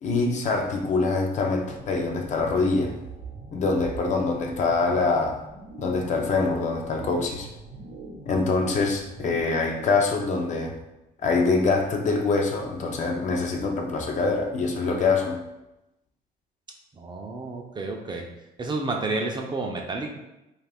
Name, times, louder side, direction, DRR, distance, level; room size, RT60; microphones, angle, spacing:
voice 1, 0.0-3.0 3.5-5.4 5.8-7.5 8.3-10.7 11.2-15.4, left 3 dB, 45° left, 2 dB, 0.5 m, -24 dB
sound 1, 1.6-9.4, right 3 dB, 80° right, 0.7 m, -43 dB
voice 2, 16.9-18.3 18.6-20.1, right 3 dB, 25° right, 1 dB, 0.4 m, -30 dB
2.4 x 2.4 x 3.4 m, 0.93 s
cardioid pair, 110°, 17 cm